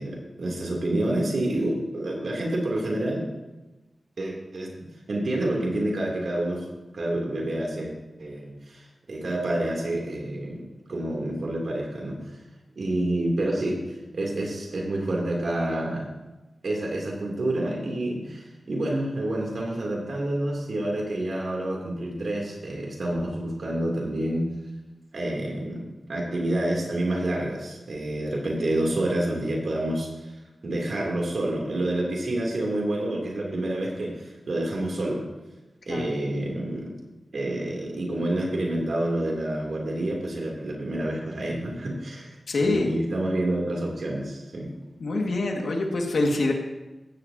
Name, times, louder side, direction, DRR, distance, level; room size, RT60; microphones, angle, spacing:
voice 1, 0.0-3.3 4.2-6.7 6.9-12.2 12.7-13.8 14.1-16.1 16.6-24.5 25.1-25.8 26.1-30.1 30.6-35.3 35.9-36.9 37.3-44.7, right 1 dB, 70° right, -1 dB, 3.2 m, -28 dB
voice 2, 42.5-42.9 45.0-46.5, left 2 dB, 80° left, 1 dB, 2.1 m, -25 dB
15.5 x 15.0 x 2.9 m, 1.1 s
wide cardioid pair, 85°, 0 cm